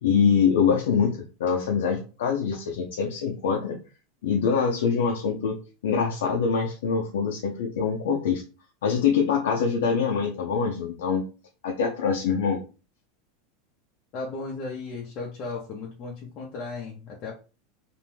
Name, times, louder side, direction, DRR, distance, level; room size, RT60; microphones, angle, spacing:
voice 1, 0.0-3.8 4.2-8.4 8.8-11.2 11.6-12.6, left 6 dB, 90° left, 0 dB, 0.5 m, -24 dB
voice 2, 14.1-17.4, left 3 dB, 40° left, -2 dB, 0.6 m, -35 dB
2.5 x 2.1 x 3.2 m, 0.34 s
supercardioid pair, 145°, 0 cm